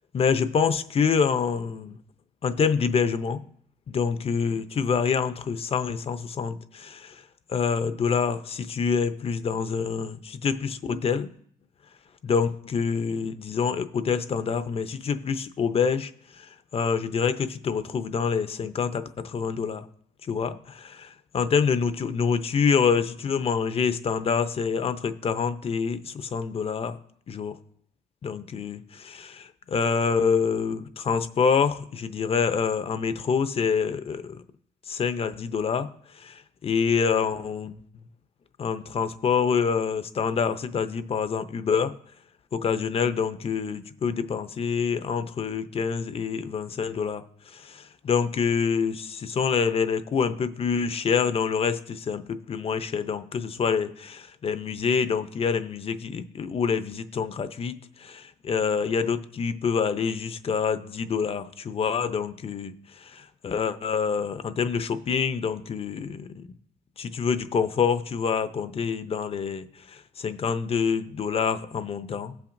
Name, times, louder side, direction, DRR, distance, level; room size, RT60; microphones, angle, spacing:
voice 1, 0.1-2.0 2.4-3.4 3.9-7.2 7.5-11.3 12.2-16.1 16.4-16.5 16.7-19.8 20.3-27.0 27.3-27.5 28.2-34.4 34.9-35.9 36.2-37.8 38.6-41.9 42.5-47.2 47.5-62.7 63.0-66.4 67.0-72.3, left 6 dB, 35° left, 0.6 m, -26 dB
17.0 x 5.8 x 2.6 m
cardioid pair, 110°, 17 cm